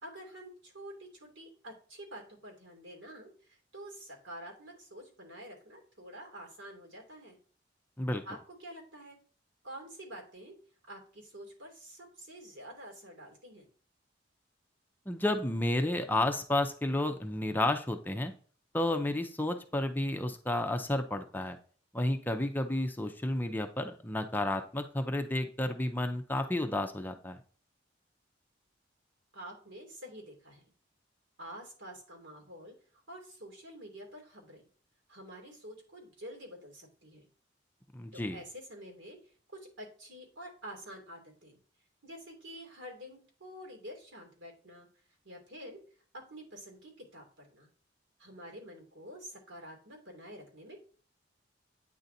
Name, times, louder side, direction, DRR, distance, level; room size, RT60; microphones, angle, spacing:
voice 1, 0.0-7.4 8.2-9.2 9.6-10.6 10.9-13.7 29.3-30.7 31.4-34.6 35.1-37.3 38.1-39.2 39.5-41.6 42.0-44.9 45.2-45.8 46.1-47.7 48.2-50.8, equal, 80° right, 1 dB, 2.7 m, -48 dB
voice 2, 15.1-18.3 18.7-21.6 21.9-27.4 37.9-38.4, left 1 dB, 10° left, 6 dB, 0.5 m, -31 dB
9.0 x 3.9 x 2.7 m, 0.42 s
head